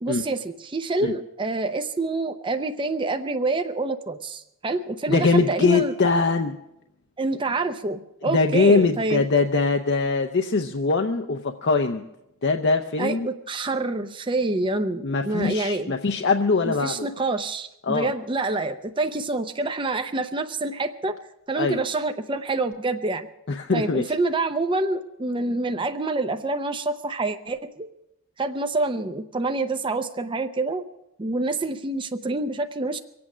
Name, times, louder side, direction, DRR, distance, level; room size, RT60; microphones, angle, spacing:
voice 1, 0.0-6.0 7.2-9.3 13.0-15.9 16.6-21.2 21.5-23.3 23.7-27.9 28.4-30.8 31.2-33.0, right 2 dB, 25° right, 7 dB, 0.6 m, -27 dB
voice 2, 5.1-6.5 8.2-12.0 12.4-13.3 15.0-17.1 17.8-18.1 21.6-21.8 23.5-24.0, left 4 dB, 55° left, 5 dB, 0.7 m, -22 dB
23.5 x 8.6 x 6.1 m, 0.86 s
head